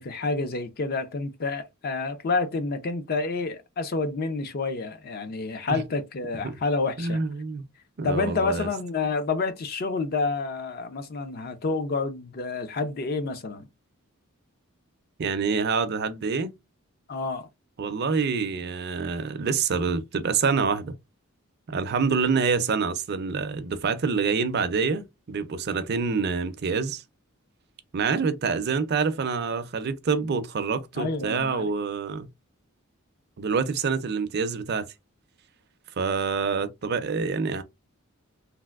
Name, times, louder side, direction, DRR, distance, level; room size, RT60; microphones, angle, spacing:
voice 1, 0.0-7.2 8.0-13.7 17.1-17.5 31.0-31.7, left 3 dB, 45° left, 0.5 m, -29 dB
voice 2, 7.0-7.6 8.0-8.7 15.2-16.5 17.8-20.9 21.7-27.0 27.9-32.3 33.4-34.9 36.0-37.6, right 5 dB, 50° right, 0.4 m, -26 dB
3.3 x 2.5 x 2.4 m
head